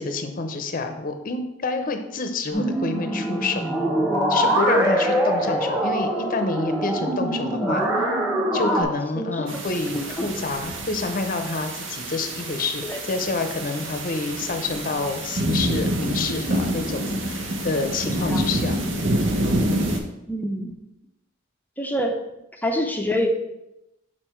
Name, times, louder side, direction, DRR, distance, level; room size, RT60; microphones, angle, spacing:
voice 1, 0.0-3.6 4.3-8.1 8.5-18.8, left 3 dB, 45° left, 6 dB, 0.7 m, -28 dB
sound 1, 2.5-8.8, right 1 dB, 15° right, 1.6 m, -23 dB
voice 2, 9.2-9.5 9.9-10.3 12.8-13.0 18.3-18.5 20.3-20.7 21.8-22.3 22.6-23.3, left 1 dB, 10° left, 2 dB, 0.6 m, -26 dB
sound 2, 9.5-20.0, right 1 dB, 75° right, 1.0 m, -27 dB
6.5 x 4.3 x 4.5 m, 0.92 s
head